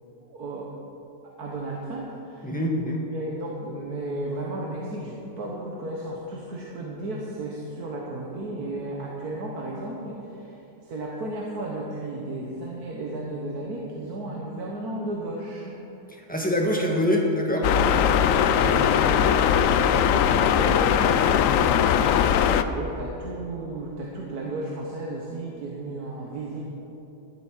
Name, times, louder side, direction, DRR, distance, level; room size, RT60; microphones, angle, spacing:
voice 1, 0.3-0.7 1.4-2.5 3.1-15.7 17.8-18.0 18.3-22.1 22.3-26.6, right 2 dB, 70° right, -2 dB, 1.7 m, -34 dB
voice 2, 2.4-3.1 16.3-17.7, left 1 dB, 5° left, -1 dB, 1.3 m, -24 dB
sound 1, 17.6-22.6, left 8 dB, 70° left, 0.8 m, -20 dB
12.5 x 8.0 x 7.3 m, 3.0 s
omnidirectional pair, 1.7 m